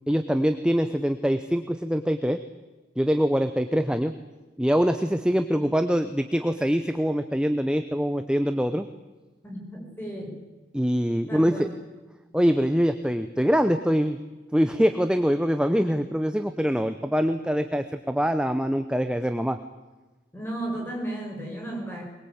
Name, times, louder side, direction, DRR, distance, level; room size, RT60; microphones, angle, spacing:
voice 1, 0.1-2.4 3.0-4.1 4.6-8.9 10.7-11.7 12.3-14.2 14.5-19.6, equal, 5° right, 8 dB, 0.8 m, -24 dB
voice 2, 9.4-10.4 11.3-11.7 20.3-22.0, right 1 dB, 10° left, -1 dB, 6.2 m, -34 dB
22.5 x 21.5 x 8.8 m, 1.2 s
head